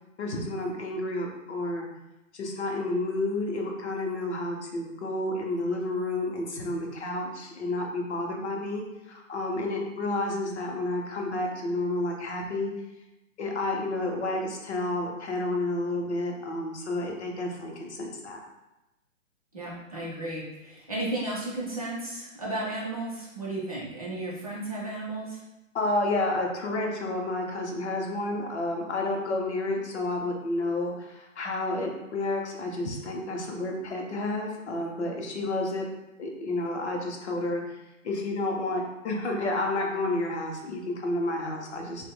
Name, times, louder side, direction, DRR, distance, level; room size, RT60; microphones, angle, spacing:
voice 1, 0.2-1.9 2.3-12.7 13.4-18.4 25.7-35.9 36.2-37.8 38.0-42.1, left 2 dB, 55° left, 1 dB, 0.7 m, -30 dB
voice 2, 19.5-25.4, right 2 dB, 30° right, -6 dB, 0.5 m, -34 dB
2.6 x 2.1 x 3.5 m, 0.98 s
hypercardioid pair, 170°, 40 cm